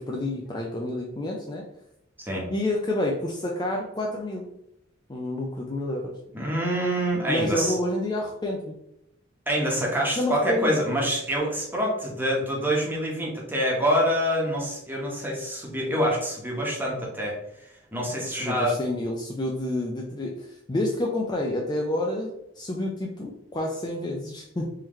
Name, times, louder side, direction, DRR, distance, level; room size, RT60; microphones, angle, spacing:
voice 1, 0.0-1.6 2.5-4.5 5.1-6.2 7.3-8.8 10.2-10.8 16.9-17.0 18.2-24.7, left 1 dB, 20° left, 0 dB, 0.4 m, -29 dB
voice 2, 6.3-7.8 9.5-17.4 17.9-18.8, equal, 10° right, -3 dB, 1.0 m, -26 dB
3.8 x 3.0 x 3.1 m, 0.79 s
head